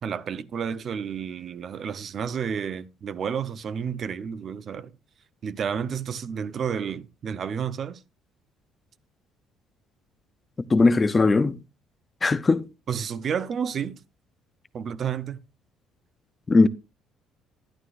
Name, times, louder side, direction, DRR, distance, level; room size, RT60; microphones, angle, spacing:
voice 1, 0.0-4.9 5.4-8.0 12.9-14.0 14.7-15.4, right 7 dB, 40° right, 0.6 m, -31 dB
voice 2, 10.7-11.6 12.2-12.7 16.5-16.7, left 3 dB, 20° left, 0.4 m, -19 dB
11.5 x 11.0 x 2.5 m
cardioid pair, 135°, 0 cm